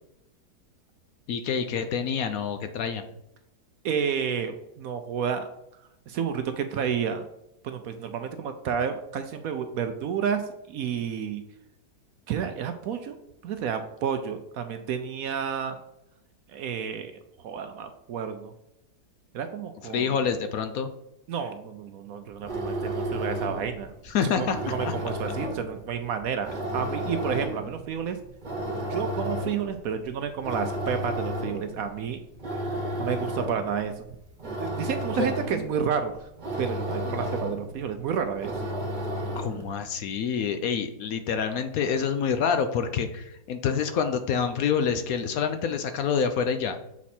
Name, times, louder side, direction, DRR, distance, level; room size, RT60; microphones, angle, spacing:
voice 1, 1.3-3.0 19.9-20.9 24.0-25.0 35.2-35.3 39.3-46.8, left 6 dB, 70° left, 8 dB, 0.9 m, -27 dB
voice 2, 3.8-5.5 6.1-7.3 7.6-10.4 10.7-11.4 12.3-13.2 13.4-15.8 16.5-17.1 17.4-18.5 19.3-20.1 21.3-23.9 24.2-28.2 28.9-32.2 33.0-34.0 34.6-36.1 36.6-38.5, right 7 dB, 70° right, 8 dB, 0.9 m, -30 dB
sound 1, 22.3-39.8, right 1 dB, 30° right, 1.0 m, -33 dB
7.1 x 4.2 x 4.3 m, 0.82 s
omnidirectional pair, 1.8 m